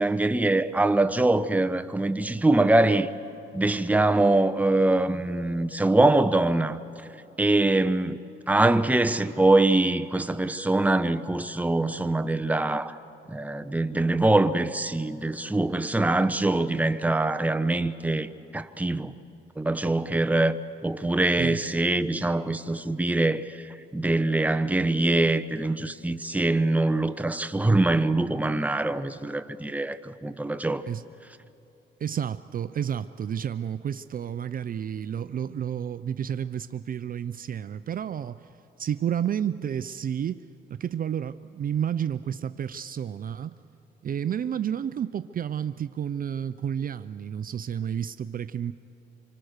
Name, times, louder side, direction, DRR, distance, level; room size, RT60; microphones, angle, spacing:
voice 1, 0.0-3.1 3.5-6.8 7.4-8.2 8.5-13.0 13.3-19.1 19.6-20.5 20.8-30.8, right 2 dB, 5° right, 0.9 m, -23 dB
voice 2, 32.0-38.5 38.8-43.6 44.0-48.7, right 9 dB, 45° right, 0.5 m, -31 dB
26.5 x 24.5 x 6.6 m
cardioid pair, 90°, 20 cm